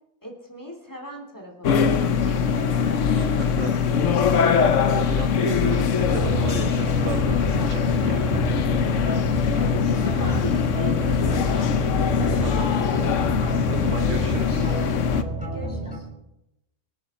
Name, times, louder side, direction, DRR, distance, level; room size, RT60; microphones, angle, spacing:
voice 1, 0.2-3.3 9.9-11.7 15.3-16.1, equal, 15° left, 1 dB, 2.8 m, -38 dB
sound 1, 1.6-15.2, left 6 dB, 65° left, 1.2 m, -22 dB
voice 2, 3.2-3.7 4.5-8.3 12.4-12.8 13.7-14.7, right 7 dB, 65° right, 9 dB, 1.0 m, -35 dB
sound 2, 6.0-16.0, right 2 dB, 5° right, 3.5 m, -30 dB
24.5 x 9.5 x 4.2 m, 0.88 s
omnidirectional pair, 1.5 m